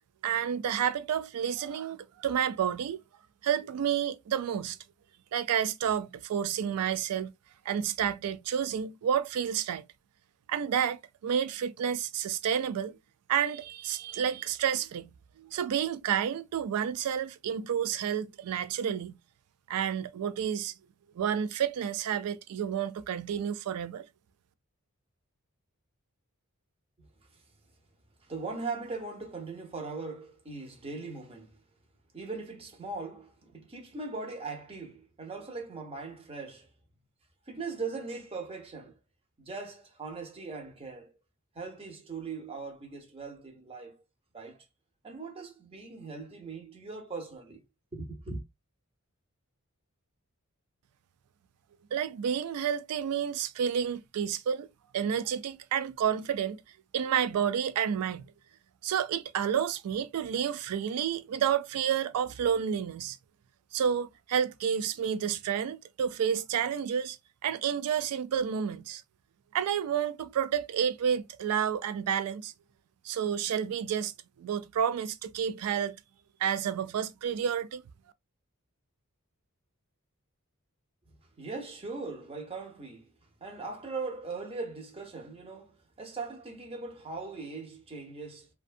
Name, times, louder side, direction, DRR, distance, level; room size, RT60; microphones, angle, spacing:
voice 1, 0.2-3.0 3.4-4.8 5.3-7.3 7.7-9.8 10.5-13.0 13.3-15.1 15.4-19.2 19.7-20.7 21.2-24.0 51.9-54.7 54.9-56.6 56.9-58.3 58.8-63.2 63.7-67.2 67.4-69.0 69.5-72.5 73.0-74.1 74.4-76.0 76.4-77.8, right 8 dB, 85° right, 0.3 m, -30 dB
voice 2, 28.2-31.6 32.1-36.7 37.5-39.0 39.4-41.1 41.5-44.0 44.3-44.6 45.0-47.6 47.9-48.4 81.4-83.1 83.4-88.5, right 3 dB, 25° right, 0.7 m, -40 dB
2.6 x 2.2 x 2.4 m
head